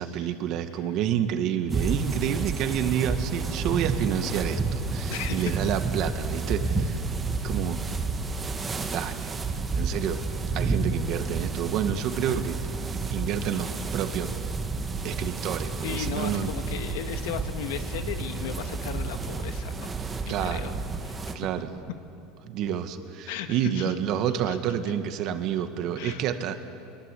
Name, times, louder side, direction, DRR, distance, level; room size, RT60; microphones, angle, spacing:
voice 1, 0.0-7.0 7.4-7.8 8.9-9.3 9.7-10.2 10.5-12.6 13.1-14.3 15.0-16.5 20.2-20.7 21.3-21.7 22.4-26.6, right 9 dB, 45° right, 8 dB, 1.6 m, -29 dB
sound 1, 1.7-21.4, right 3 dB, 15° right, 1.4 m, -30 dB
voice 2, 5.1-5.5 7.4-7.5 15.8-19.9 20.4-20.7 21.0-21.2 23.3-23.9 24.5-24.6 26.0-26.2, left 10 dB, 80° left, 8 dB, 1.6 m, -35 dB
24.0 x 22.0 x 8.4 m, 2.6 s
supercardioid pair, 150°, 0 cm